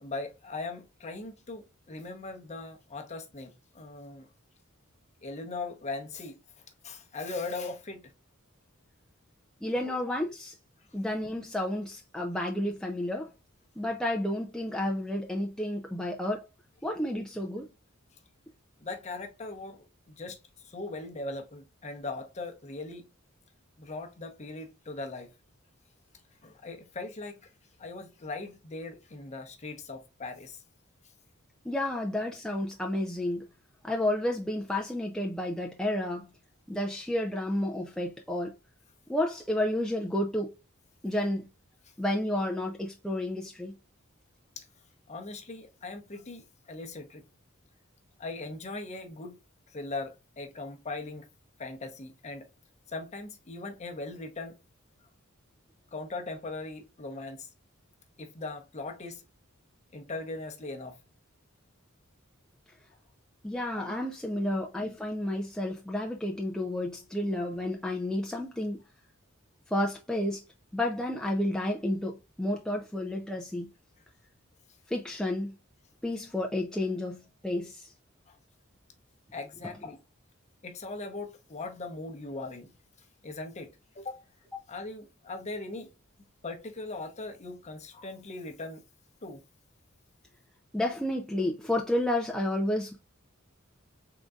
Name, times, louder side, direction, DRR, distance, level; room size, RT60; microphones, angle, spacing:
voice 1, 0.0-4.3 5.2-6.4 6.8-8.1 9.8-10.0 18.8-20.4 20.6-23.1 23.8-25.3 26.4-27.5 27.8-30.6 44.6-44.7 45.1-47.2 48.2-49.4 49.7-51.3 51.6-52.5 52.9-54.6 55.9-57.5 58.2-59.2 59.9-61.0 63.7-63.9 78.3-78.4 79.3-80.0 80.6-82.7 83.2-84.2 84.7-85.9 86.4-88.8 89.2-89.4, left 3 dB, 35° left, 0.8 m, -39 dB
voice 2, 9.6-10.5 10.9-13.3 13.8-16.5 16.8-17.7 31.7-33.5 33.8-36.3 36.7-38.5 39.1-40.5 41.0-41.5 42.0-43.7 63.4-68.8 69.7-70.4 70.7-73.7 74.9-75.5 76.0-77.9 90.7-93.0, left 1 dB, 5° left, 0.4 m, -31 dB
3.8 x 3.7 x 2.3 m
head